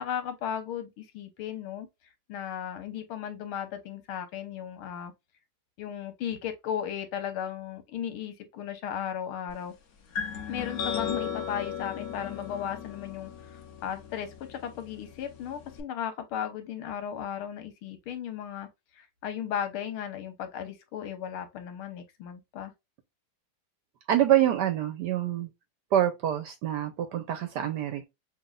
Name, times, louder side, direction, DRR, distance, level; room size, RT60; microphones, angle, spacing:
voice 1, 0.0-1.9 2.3-5.1 5.8-9.7 10.5-18.7 18.9-22.7, left 9 dB, 85° left, 1.8 m, -36 dB
sound 1, 10.1-15.8, left 7 dB, 55° left, 1.1 m, -36 dB
voice 2, 24.1-25.5 25.9-28.1, right 11 dB, 70° right, 1.0 m, -26 dB
6.0 x 2.6 x 2.3 m
omnidirectional pair, 2.3 m